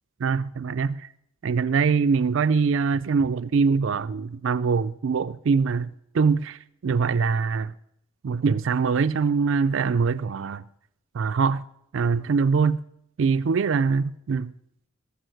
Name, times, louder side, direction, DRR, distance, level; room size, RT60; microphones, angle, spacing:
voice 1, 0.2-1.1 1.4-5.9 6.1-7.7 8.2-10.6 11.1-11.6 11.9-12.8 13.2-14.5, right 5 dB, 60° right, 0.4 m, -23 dB
17.0 x 7.2 x 6.3 m
head